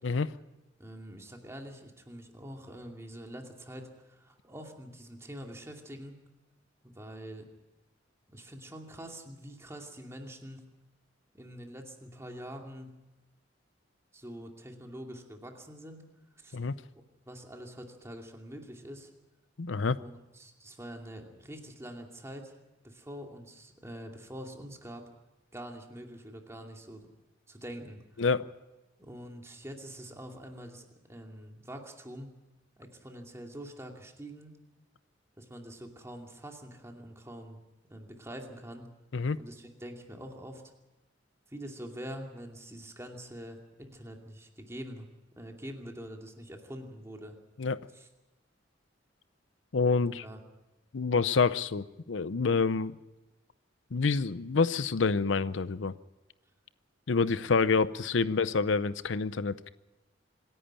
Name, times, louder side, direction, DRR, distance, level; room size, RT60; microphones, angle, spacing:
voice 1, 0.8-6.1 6.8-7.5 8.3-10.7 11.3-12.9 14.1-16.0 16.4-16.6 16.9-19.1 20.0-22.6 22.8-25.1 25.5-27.1 27.5-28.2 29.0-32.3 32.8-34.6 35.4-37.6 37.9-38.9 39.4-40.6 41.5-45.1 45.4-47.4 47.9-48.1 50.0-50.4 57.4-57.5, equal, 15° right, 2 dB, 2.5 m, -45 dB
voice 2, 19.6-20.0 28.2-28.5 39.1-39.4 47.6-47.8 49.7-50.2 50.9-53.0 53.9-55.9 57.1-59.7, left 4 dB, 80° left, 15 dB, 0.6 m, -27 dB
26.0 x 11.0 x 10.0 m, 1.1 s
head